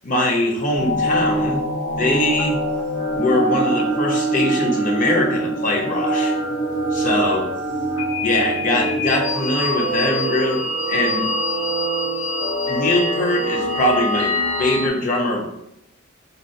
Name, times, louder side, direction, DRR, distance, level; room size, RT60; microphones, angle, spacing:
voice 1, 0.0-1.6 1.9-2.6 3.2-6.3 6.9-7.5 8.2-11.3 12.7-14.3 14.6-15.4, left 1 dB, 40° left, 0 dB, 0.7 m, -22 dB
sound 1, 0.7-14.9, right 1 dB, 85° left, 0.7 m, -23 dB
4.1 x 2.1 x 2.6 m, 0.78 s
head